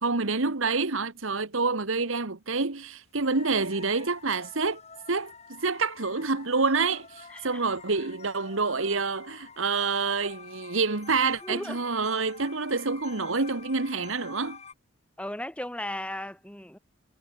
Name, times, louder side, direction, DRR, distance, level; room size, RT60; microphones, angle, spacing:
voice 1, 0.0-4.8 5.1-14.6, right 4 dB, 75° right, 1.5 m, -27 dB
sound 1, 3.2-14.7, left 5 dB, 30° left, 4.2 m, -48 dB
voice 2, 7.3-7.7 11.4-11.8 15.2-16.8, left 1 dB, 5° left, 2.2 m, -36 dB
head